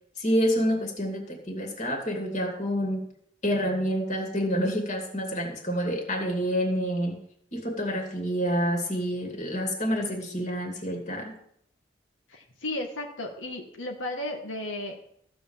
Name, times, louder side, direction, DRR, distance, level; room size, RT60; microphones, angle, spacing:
voice 1, 0.2-3.1 3.4-7.2 7.5-11.4, equal, 40° left, 2 dB, 2.5 m, -28 dB
voice 2, 12.3-15.1, left 1 dB, 90° left, 2 dB, 1.6 m, -34 dB
14.5 x 5.2 x 7.3 m, 0.69 s
head